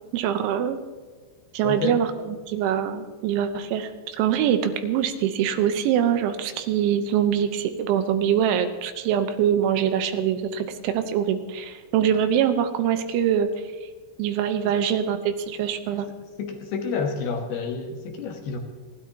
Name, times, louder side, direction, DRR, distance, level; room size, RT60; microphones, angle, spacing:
voice 1, 0.1-0.8 1.5-13.5 14.2-16.1, right 9 dB, 80° right, 8 dB, 3.3 m, -24 dB
voice 2, 1.6-2.0 16.4-18.6, left 5 dB, 65° left, 3 dB, 3.0 m, -29 dB
29.5 x 12.5 x 2.9 m, 1.5 s
omnidirectional pair, 5.6 m